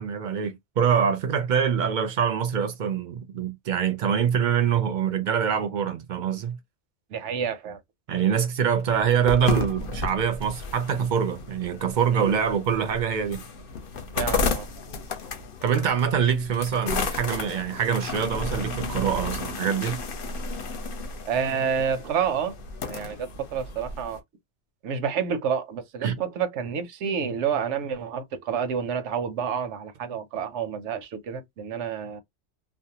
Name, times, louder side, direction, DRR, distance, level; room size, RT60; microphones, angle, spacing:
voice 1, 0.0-6.6 8.1-13.4 15.6-20.0 26.0-26.1, right 7 dB, 55° right, 0.5 m, -24 dB
voice 2, 7.1-7.8 12.1-12.4 14.1-14.7 21.2-22.6 22.8-24.2 24.8-32.2, right 7 dB, 85° right, 0.9 m, -29 dB
sound 1, 8.9-24.2, left 4 dB, 60° left, 0.7 m, -33 dB
2.5 x 2.0 x 2.8 m
omnidirectional pair, 1.2 m